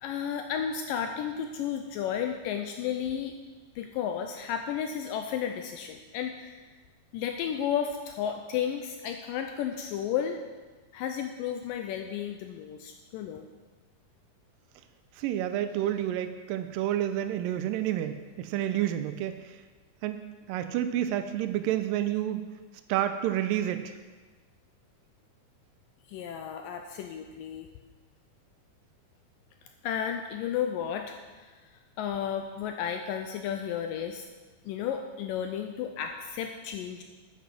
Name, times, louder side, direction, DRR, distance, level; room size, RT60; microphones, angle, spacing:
voice 1, 0.0-3.3 3.8-6.7 7.1-10.4 10.9-13.5 26.1-27.7 29.8-34.3 34.7-37.0, left 8 dB, 90° left, 5 dB, 2.0 m, -33 dB
voice 2, 15.2-19.6 20.0-22.4 22.9-23.9, right 11 dB, 85° right, 10 dB, 2.0 m, -29 dB
9.3 x 8.8 x 6.0 m, 1.3 s
omnidirectional pair, 4.5 m